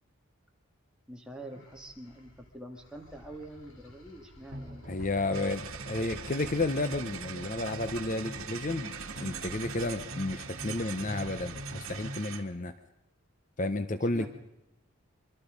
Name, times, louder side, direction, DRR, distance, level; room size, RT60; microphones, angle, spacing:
voice 1, 1.1-4.8 14.1-14.3, right 1 dB, 5° right, 0 dB, 2.2 m, -45 dB
sound 1, 1.3-8.5 8.9-10.2 10.4-10.6 11.0-12.1, left 1 dB, 70° left, 3.6 m, -56 dB
sound 2, 4.5-12.2, equal, 60° right, 3.1 m, -44 dB
voice 2, 4.9-12.7 13.6-14.3, left 2 dB, 35° left, 10 dB, 0.7 m, -32 dB
sound 3, 5.3-12.5, right 6 dB, 80° right, 1.6 m, -42 dB
25.0 x 24.0 x 5.2 m, 0.92 s
head